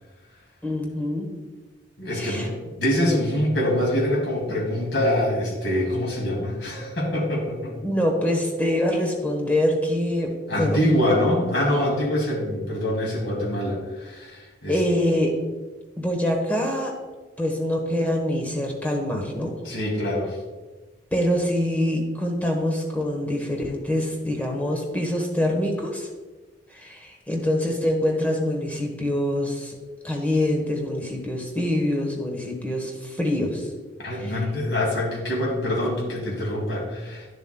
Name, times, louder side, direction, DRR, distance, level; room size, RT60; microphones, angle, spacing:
voice 1, 0.6-1.3 2.1-2.5 7.8-10.8 14.7-15.3 16.0-16.9 17.4-19.5 21.1-26.1 26.7-29.8 30.0-33.7 34.1-34.4, left 1 dB, 10° left, 1 dB, 1.1 m, -25 dB
voice 2, 2.0-7.7 10.5-14.8 19.6-20.4 34.0-37.3, left 1 dB, 70° left, -2 dB, 2.4 m, -24 dB
10.0 x 7.2 x 2.3 m, 1.3 s
head